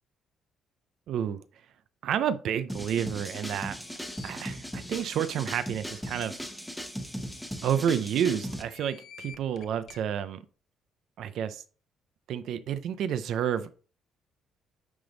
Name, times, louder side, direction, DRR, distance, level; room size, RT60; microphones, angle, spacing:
voice 1, 1.1-1.4 2.0-3.8 4.2-6.4 7.6-10.4 11.2-11.6 12.3-13.8, right 9 dB, 60° right, 13 dB, 0.5 m, -30 dB
sound 1, 2.7-8.6, equal, ahead, 0.9 m, -38 dB
sound 2, 3.8-4.3 4.9-5.0 5.3-5.4 5.9-6.3 7.0-7.1 7.4-7.5 8.5-10.0, left 7 dB, 50° left, 0.7 m, -50 dB
9.5 x 3.5 x 3.9 m, 0.39 s
cardioid pair, 165°, 0 cm